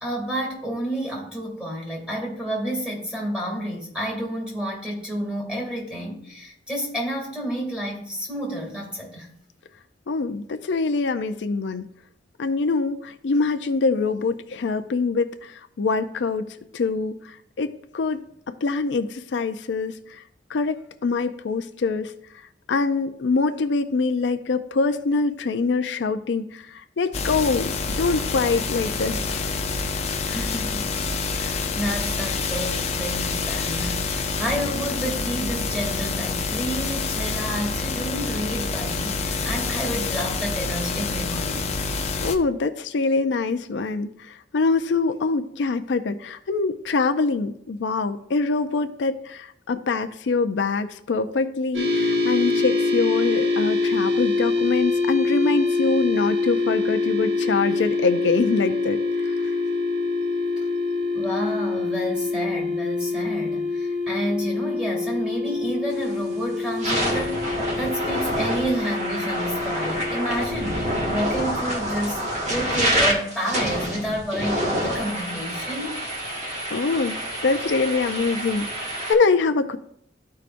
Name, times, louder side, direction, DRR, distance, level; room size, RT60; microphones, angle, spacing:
voice 1, 0.0-9.3 30.3-31.0 31.3-41.8 61.1-76.0, equal, 5° right, -3 dB, 2.4 m, -30 dB
voice 2, 10.1-11.8 12.4-18.2 18.6-20.2 20.5-22.1 22.7-29.6 30.3-30.5 42.2-59.0 59.2-59.5 76.7-79.8, left 4 dB, 80° left, 8 dB, 0.5 m, -24 dB
sound 1, 27.1-42.4, left 4 dB, 40° left, 0.6 m, -27 dB
sound 2, 51.7-71.4, left 3 dB, 75° right, 1.2 m, -25 dB
sound 3, 66.0-66.2 66.7-79.1, equal, 40° right, 1.6 m, -27 dB
13.5 x 4.7 x 2.5 m, 0.70 s
head